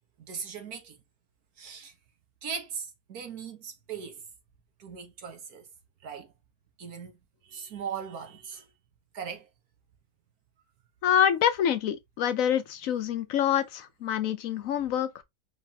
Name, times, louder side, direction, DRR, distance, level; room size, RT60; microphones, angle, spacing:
voice 1, 0.3-1.0 1.6-1.9 2.4-4.2 4.8-5.7 6.0-6.3 6.8-7.2 7.4-8.6 9.1-9.5, right 7 dB, 75° right, 1.8 m, -39 dB
voice 2, 11.0-15.2, left 9 dB, 70° left, 1.0 m, -26 dB
5.0 x 3.4 x 2.9 m
omnidirectional pair, 1.6 m